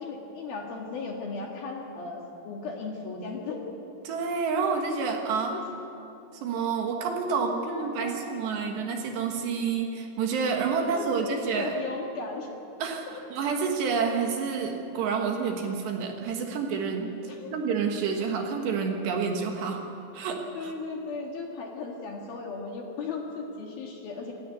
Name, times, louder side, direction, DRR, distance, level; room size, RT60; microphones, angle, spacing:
voice 1, 0.0-3.6 5.5-5.6 7.3-8.6 10.8-12.5 13.1-13.2 17.3-17.5 20.5-24.3, left 4 dB, 60° left, 0 dB, 2.9 m, -36 dB
voice 2, 4.0-5.6 6.3-11.8 12.8-17.1 17.5-19.8 20.1-20.7, right 5 dB, 70° right, 2 dB, 3.3 m, -29 dB
27.5 x 13.5 x 9.6 m, 2.9 s
omnidirectional pair, 5.9 m